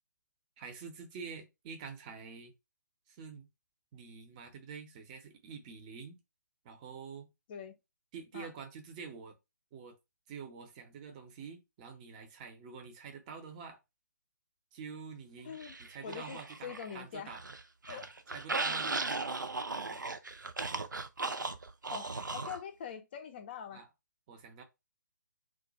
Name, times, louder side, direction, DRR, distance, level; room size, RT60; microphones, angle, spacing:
voice 1, 0.6-2.5 3.1-3.5 3.9-6.2 6.6-7.3 8.1-9.4 9.7-9.9 10.3-13.8 14.7-17.4 17.9-20.0 23.7-23.9 24.3-24.6, right 6 dB, 25° right, 0.6 m, -47 dB
voice 2, 15.4-15.8 16.0-17.3 17.8-18.1 21.9-23.8, left 8 dB, 30° left, 0.5 m, -44 dB
sound 1, 15.6-16.9 17.3-22.6, right 3 dB, 80° right, 0.4 m, -37 dB
2.3 x 2.2 x 3.9 m
figure-of-eight pair, 140°, 10 cm